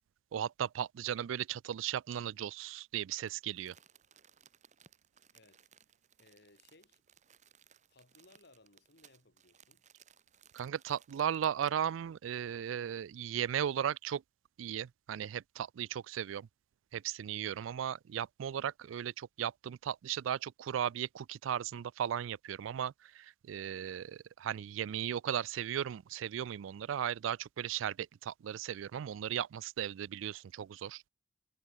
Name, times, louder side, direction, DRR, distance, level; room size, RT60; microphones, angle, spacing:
voice 1, 0.3-3.7 10.5-14.2 14.6-16.5 16.9-31.0, right 9 dB, 90° right, 0.3 m, -36 dB
Crumpling crinkling, 3.2-11.9 12.3-12.4, right 8 dB, 40° right, 1.2 m, -64 dB
voice 2, 5.3-5.7 6.2-7.0 7.9-9.9, left 2 dB, 60° left, 3.2 m, -63 dB
head